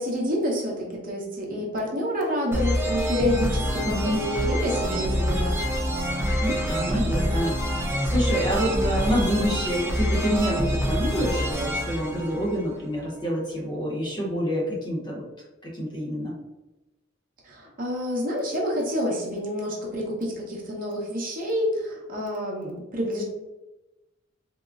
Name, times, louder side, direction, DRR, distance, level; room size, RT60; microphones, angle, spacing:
voice 1, 0.0-5.6 17.4-23.2, equal, 45° right, -2 dB, 0.7 m, -28 dB
sound 1, 2.5-13.1, equal, 15° right, 0.4 m, -26 dB
voice 2, 3.8-4.2 6.4-7.6 7.8-15.2 15.6-16.3, equal, 25° left, -3 dB, 0.7 m, -27 dB
3.6 x 2.0 x 2.4 m, 1.0 s
head